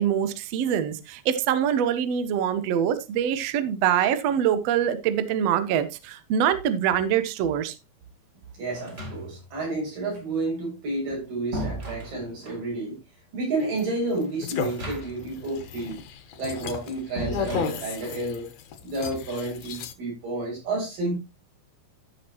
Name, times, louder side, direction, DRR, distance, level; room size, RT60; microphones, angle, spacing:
voice 1, 0.0-7.7, right 9 dB, 80° right, 1.4 m, -24 dB
voice 2, 8.5-13.0 13.3-16.0 16.4-18.5 18.8-21.2, right 2 dB, 65° right, 8.1 m, -30 dB
sound 1, 8.7-9.6 10.9-12.7 14.5-15.4 15.6-15.7 17.2-18.3, right 1 dB, 20° right, 1.9 m, -36 dB
sound 2, 13.6-19.9, left 6 dB, 65° left, 2.0 m, -35 dB
13.5 x 6.6 x 2.9 m
omnidirectional pair, 4.3 m